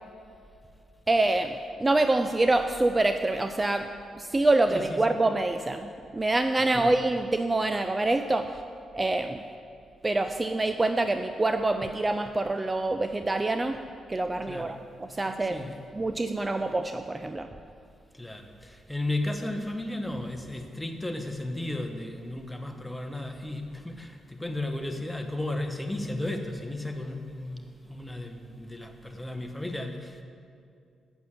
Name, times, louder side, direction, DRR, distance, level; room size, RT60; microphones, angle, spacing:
voice 1, 1.1-3.9 4.1-8.6 8.9-9.4 10.0-13.8 14.1-15.6 15.9-17.5, right 2 dB, 25° right, 8 dB, 0.4 m, -26 dB
voice 2, 14.5-14.8 15.1-15.2 15.5-15.8 18.1-30.2, left 1 dB, 10° left, 5 dB, 1.1 m, -34 dB
7.1 x 6.2 x 7.5 m, 2.4 s
hypercardioid pair, 45°, 0 cm